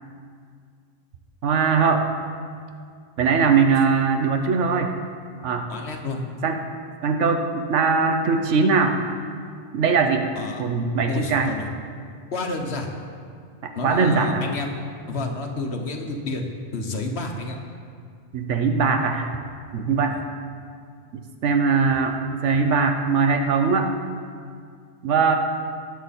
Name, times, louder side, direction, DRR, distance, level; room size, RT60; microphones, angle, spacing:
voice 1, 1.4-2.0 3.2-4.9 5.4-5.7 6.4-6.6 7.0-9.0 9.7-10.3 10.6-11.5 13.6-14.4 18.3-19.3 19.7-20.2 21.1-23.9 25.0-25.4, right 5 dB, 80° right, 5 dB, 1.1 m, -21 dB
voice 2, 5.7-6.2 10.3-10.6 11.1-11.7 12.3-12.9 13.7-14.7 15.1-16.5 16.7-17.6 20.1-20.2, left 3 dB, 60° left, 3 dB, 1.4 m, -30 dB
19.0 x 7.2 x 4.2 m, 2.2 s
omnidirectional pair, 1.2 m